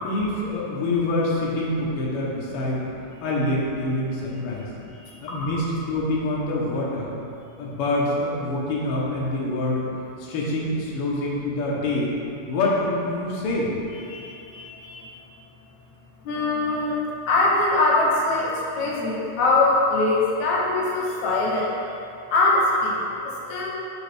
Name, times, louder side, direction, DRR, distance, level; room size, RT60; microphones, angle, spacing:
voice 1, 0.0-2.8 3.2-4.7 5.2-7.1 7.6-9.9 10.2-12.1 12.5-13.7, left 2 dB, 90° left, -5 dB, 1.2 m, -26 dB
voice 2, 2.5-3.0 4.5-5.4 14.0-15.1 16.2-17.0 17.3-21.7 22.3-23.7, left 2 dB, 70° left, -3 dB, 1.9 m, -23 dB
7.7 x 4.4 x 3.3 m, 2.7 s
omnidirectional pair, 3.9 m